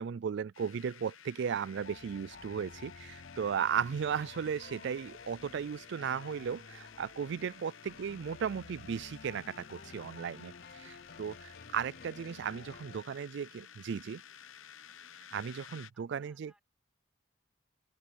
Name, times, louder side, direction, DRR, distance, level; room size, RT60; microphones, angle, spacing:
voice 1, 0.0-14.2 15.3-16.5, right 7 dB, 60° right, 0.3 m, -36 dB
sound 1, 0.5-15.9, left 9 dB, 75° left, 0.9 m, -54 dB
sound 2, 1.7-13.0, left 4 dB, 50° left, 0.7 m, -52 dB
voice 2, 15.6-16.6, right 1 dB, 5° right, 5.0 m, -74 dB
open air
head